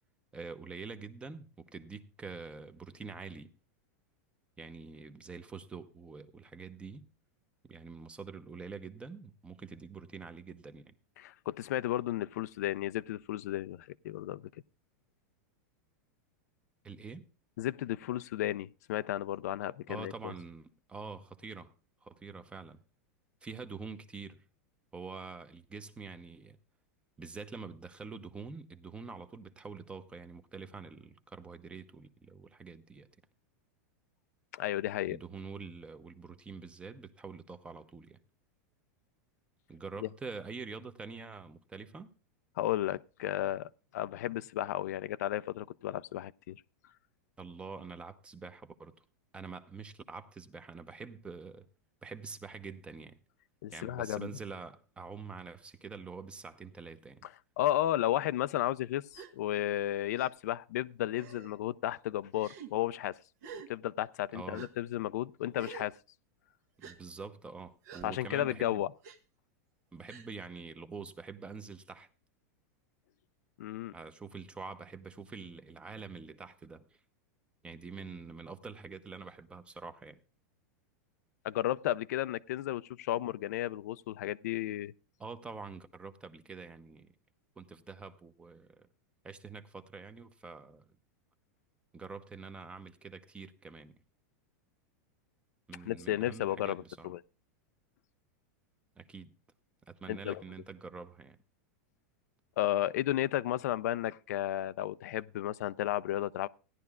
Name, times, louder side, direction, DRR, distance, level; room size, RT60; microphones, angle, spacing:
voice 1, 0.3-3.5 4.6-7.1 7.6-10.9 16.8-17.2 19.9-21.7 22.0-22.8 23.4-24.4 24.9-26.6 27.2-33.1 35.1-38.2 39.7-42.1 47.4-48.9 49.3-51.7 52.0-53.2 53.7-57.3 64.3-64.7 66.8-68.8 69.9-72.1 73.9-77.0 77.6-80.2 85.2-87.1 87.6-88.9 89.2-90.8 91.9-94.0 95.7-97.1 99.0-99.3 99.9-101.4, right 4 dB, 10° right, 0.7 m, -46 dB
voice 2, 11.2-14.4 17.6-20.3 34.5-35.2 40.0-40.1 42.6-46.6 53.6-54.3 57.6-63.2 63.7-65.9 68.0-68.9 73.6-73.9 81.4-84.9 95.9-97.2 100.1-100.4 102.6-106.5, left 13 dB, 75° left, 0.4 m, -33 dB
Gasp, 59.1-59.3 60.2-60.3 61.1-61.5 62.3-62.7 63.4-63.7 64.5-64.7 65.5-65.9 66.8-67.0 67.8-68.1 69.0-69.2 70.1-70.3, right 6 dB, 70° right, 1.3 m, -47 dB
16.5 x 10.5 x 2.4 m
supercardioid pair, 140°, 9 cm